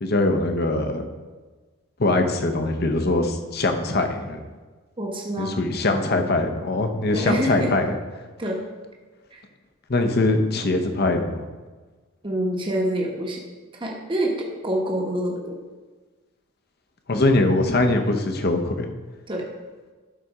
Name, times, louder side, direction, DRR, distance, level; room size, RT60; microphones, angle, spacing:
voice 1, 0.0-1.0 2.0-4.4 5.4-8.0 9.9-11.4 17.1-18.9, left 2 dB, 50° left, 5 dB, 0.8 m, -22 dB
voice 2, 5.0-5.6 7.1-7.7 8.4-8.6 12.2-13.4 13.8-15.4 19.3-19.4, right 1 dB, 25° right, -1 dB, 1.1 m, -26 dB
12.0 x 4.1 x 4.9 m, 1.3 s
head